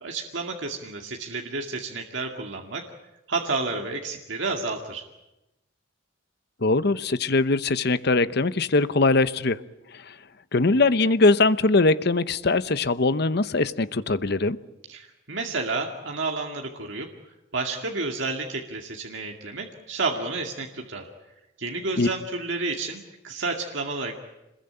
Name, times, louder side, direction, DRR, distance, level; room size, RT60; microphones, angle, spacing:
voice 1, 0.0-2.8 3.3-5.0 14.9-17.1 17.5-21.1 21.6-24.2, right 3 dB, 70° right, 1 dB, 2.3 m, -30 dB
voice 2, 6.6-9.6 9.9-10.1 10.5-14.6 22.0-22.1, left 3 dB, 55° left, 14 dB, 0.9 m, -21 dB
26.5 x 21.0 x 8.9 m, 0.96 s
head